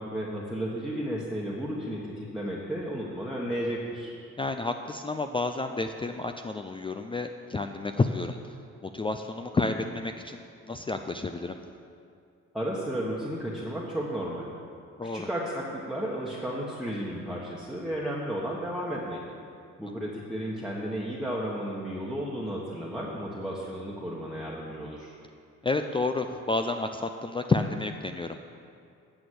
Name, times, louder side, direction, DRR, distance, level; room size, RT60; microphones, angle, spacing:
voice 1, 0.0-4.1 12.5-14.5 15.0-19.2 19.8-25.1, equal, ahead, -5 dB, 1.3 m, -33 dB
voice 2, 4.4-8.5 8.8-11.6 15.0-15.3 25.6-28.4, left 3 dB, 15° left, 6 dB, 0.4 m, -30 dB
9.5 x 6.2 x 7.9 m, 2.4 s
cardioid pair, 90°, 30 cm